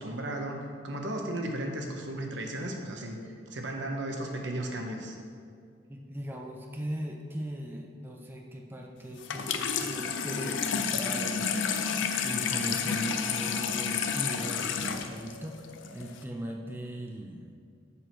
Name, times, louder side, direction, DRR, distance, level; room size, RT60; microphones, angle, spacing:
voice 1, 0.0-3.2 3.5-5.2, right 1 dB, 70° right, 2 dB, 1.0 m, -35 dB
voice 2, 5.9-11.5 12.2-17.6, equal, 10° right, 1 dB, 0.4 m, -39 dB
Water tap faucet / Sink (filling or washing), 9.2-16.2, left 6 dB, 85° left, 0.5 m, -31 dB
6.9 x 6.1 x 4.5 m, 2.3 s
head